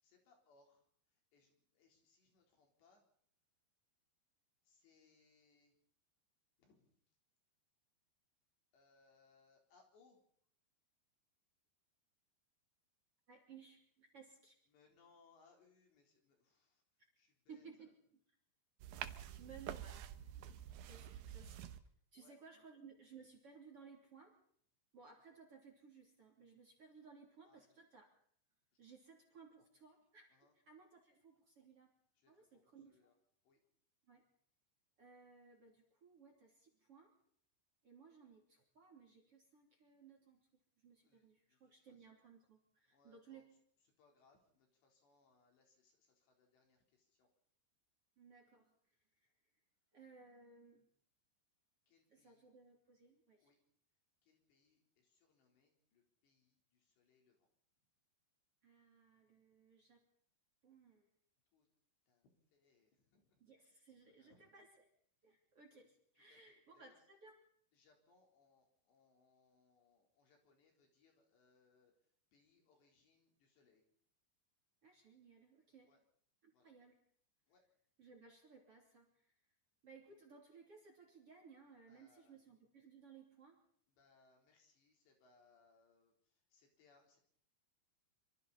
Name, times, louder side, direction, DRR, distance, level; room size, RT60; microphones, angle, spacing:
voice 1, 0.0-3.1 4.6-5.8 6.6-7.0 8.7-10.2 14.7-17.9 19.2-19.8 22.1-22.4 27.5-27.8 28.7-28.9 30.3-30.6 32.2-33.1 33.4-33.6 41.0-42.1 42.9-43.5 44.0-47.3 51.9-52.5 53.4-53.6 54.2-57.5 61.5-61.7 62.1-63.4 64.2-64.5 66.3-67.0 67.7-73.9 75.9-76.0 76.5-76.7 77.5-77.6 81.9-82.4 83.9-87.2, left 4 dB, 65° left, 1 dB, 5.9 m, -73 dB
voice 2, 13.3-14.6 17.0-17.1 17.5-17.9 19.4-20.1 20.9-21.7 22.1-24.4 24.9-28.1 28.8-31.9 32.3-33.1 34.1-34.2 35.0-37.1 37.8-40.5 40.8-43.4 48.2-49.3 49.9-50.9 52.1-53.5 58.6-60.0 60.6-61.1 63.4-64.7 65.2-67.3 74.8-75.9 76.4-77.0 78.0-79.3 79.8-83.6, right 5 dB, 35° right, 0 dB, 3.4 m, -61 dB
sound 1, 18.8-21.8, right 11 dB, 80° right, 2.1 m, -48 dB
26.0 x 26.0 x 4.2 m, 0.63 s
omnidirectional pair, 5.4 m